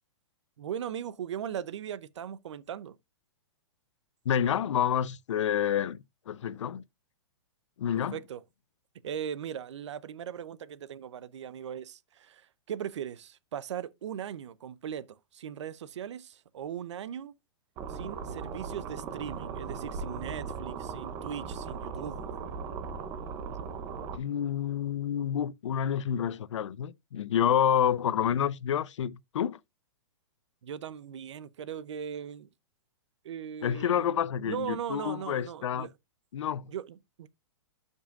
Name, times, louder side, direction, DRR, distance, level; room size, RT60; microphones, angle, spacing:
voice 1, 0.6-3.0 8.1-8.4 9.0-17.3 17.9-22.2 30.6-32.5 33.2-34.1 34.4-35.9 36.7-37.3, right 9 dB, 75° right, 0.7 m, -39 dB
voice 2, 4.3-6.8 7.8-8.2 24.1-29.6 33.6-35.9 36.3-36.7, left 9 dB, 85° left, 0.6 m, -28 dB
sound 1, 17.8-24.2, right 5 dB, 20° right, 0.6 m, -38 dB
12.0 x 5.5 x 2.4 m
hypercardioid pair, 175°, 15 cm